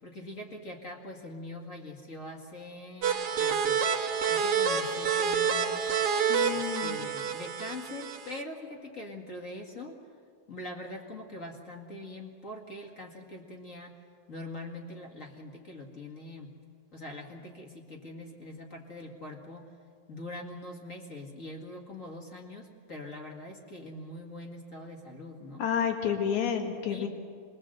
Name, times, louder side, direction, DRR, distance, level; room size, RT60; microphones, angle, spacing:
voice 1, 0.0-3.8 4.3-5.9 6.4-10.0 10.5-14.0 14.3-16.5 16.9-19.7 20.1-25.6 26.9-27.1, left 1 dB, 30° left, 1 dB, 2.0 m, -43 dB
sound 1, 3.0-8.4, right 7 dB, 60° right, 2.0 m, -28 dB
voice 2, 6.3-7.0 25.6-27.1, left 8 dB, 70° left, 3 dB, 3.4 m, -30 dB
26.0 x 21.5 x 7.8 m, 2.2 s
omnidirectional pair, 3.4 m